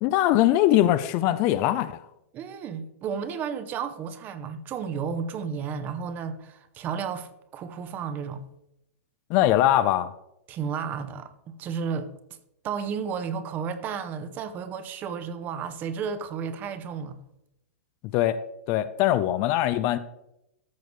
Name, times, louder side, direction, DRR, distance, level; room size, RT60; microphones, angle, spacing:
voice 1, 0.0-2.1 9.3-10.1 18.1-18.4 18.7-20.0, left 13 dB, 35° left, 0.4 m, -22 dB
voice 2, 2.3-8.5 10.5-12.1 12.6-17.2, right 6 dB, 25° right, 0.7 m, -33 dB
14.0 x 6.5 x 3.2 m
hypercardioid pair, 155°, 8 cm